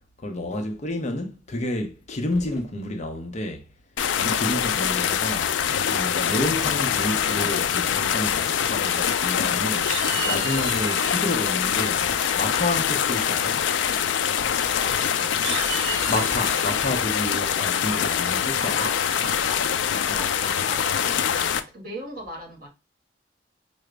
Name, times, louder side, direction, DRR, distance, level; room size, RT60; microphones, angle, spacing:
voice 1, 0.2-3.6 4.2-5.5 5.9-9.9 10.3-12.1 12.4-13.6 16.1-18.9 20.1-20.3, left 1 dB, 40° left, 0.6 m, -30 dB
sound 1, 2.3-2.6 4.4-4.8 6.4-6.8 7.8-8.6 10.1-10.5 11.9-12.5 14.3-15.2, equal, ahead, 1.1 m, -45 dB
sound 2, 4.0-21.6, left 8 dB, 90° left, 0.4 m, -24 dB
sound 3, 8.9-9.5 9.8-11.2 12.7-13.1 13.5-13.7 14.0-14.1 14.5-14.6 15.2-16.8, right 7 dB, 80° right, 0.6 m, -34 dB
voice 2, 14.8-15.6 17.0-17.1 18.6-22.7, equal, 50° right, 1.7 m, -39 dB
4.9 x 2.0 x 3.2 m
head